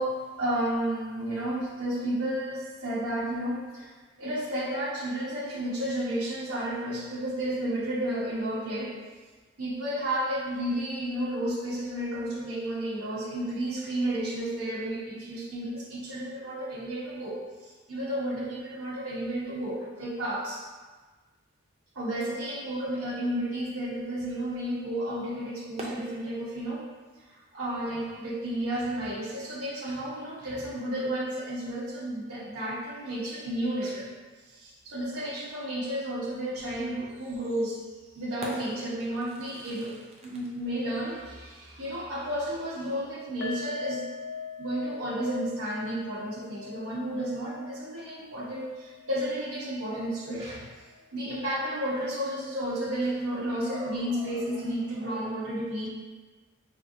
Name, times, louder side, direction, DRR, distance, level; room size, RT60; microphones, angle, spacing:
voice 1, 0.0-3.9 4.2-8.9 9.6-20.6 21.9-26.9 27.3-34.1 34.5-37.8 38.1-44.0 44.6-50.7 51.1-55.9, right 1 dB, 80° right, -6 dB, 1.1 m, -32 dB
sound 1, 23.7-41.7, right 2 dB, 30° right, 0.5 m, -49 dB
sound 2, 43.4-50.6 50.9-51.1 51.4-51.5, left 4 dB, 55° left, 0.6 m, -42 dB
sound 3, 48.2-48.3 49.9-50.8 53.6-55.3, equal, 30° left, 1.1 m, -45 dB
4.9 x 3.4 x 2.6 m, 1.4 s
head